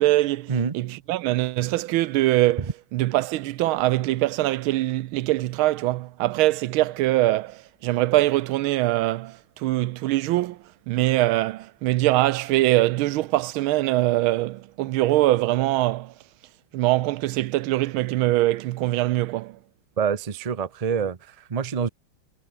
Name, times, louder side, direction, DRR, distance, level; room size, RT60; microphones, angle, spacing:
voice 1, 0.0-10.6 10.9-16.1 16.7-19.6, right 16 dB, 90° right, 1.5 m, -23 dB
voice 2, 20.0-21.9, right 6 dB, 55° right, 0.4 m, -26 dB
omnidirectional pair, 2.2 m